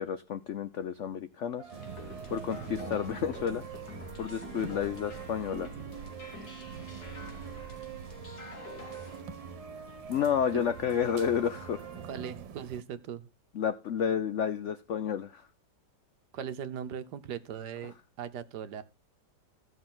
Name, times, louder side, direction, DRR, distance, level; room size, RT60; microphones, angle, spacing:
voice 1, 0.0-1.7 2.3-3.6 4.2-5.7 10.1-11.8 13.5-15.4, left 8 dB, 80° left, 0.6 m, -31 dB
sound 1, 1.6-12.3, right 6 dB, 30° right, 0.6 m, -46 dB
sound 2, 1.7-9.2, left 3 dB, 55° left, 2.7 m, -48 dB
sound 3, 1.7-12.8, right 6 dB, 85° right, 1.5 m, -46 dB
voice 2, 12.0-13.3 16.3-18.8, right 8 dB, 70° right, 1.4 m, -39 dB
15.5 x 6.1 x 3.7 m
omnidirectional pair, 2.0 m